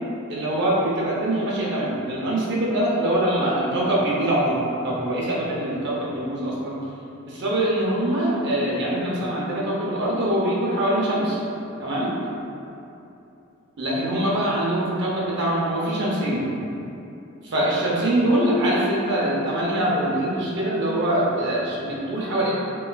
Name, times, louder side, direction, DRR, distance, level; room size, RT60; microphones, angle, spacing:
voice 1, 0.3-6.8 7.3-11.4 11.8-12.1 13.8-16.5 17.4-22.5, right 1 dB, 55° right, -5 dB, 0.6 m, -23 dB
3.0 x 2.3 x 2.2 m, 2.8 s
head